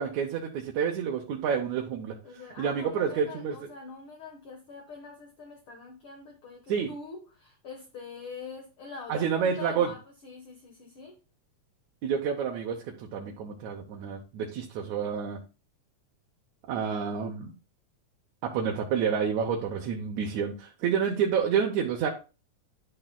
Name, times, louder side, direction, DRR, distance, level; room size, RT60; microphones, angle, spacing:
voice 1, 0.0-3.6 6.7-6.9 9.1-9.9 12.0-15.4 16.7-17.5 18.4-22.1, right 7 dB, 75° right, 1 dB, 2.3 m, -29 dB
voice 2, 2.2-11.2, left 4 dB, 55° left, 1 dB, 1.9 m, -44 dB
11.0 x 6.6 x 2.3 m, 0.32 s
omnidirectional pair, 3.4 m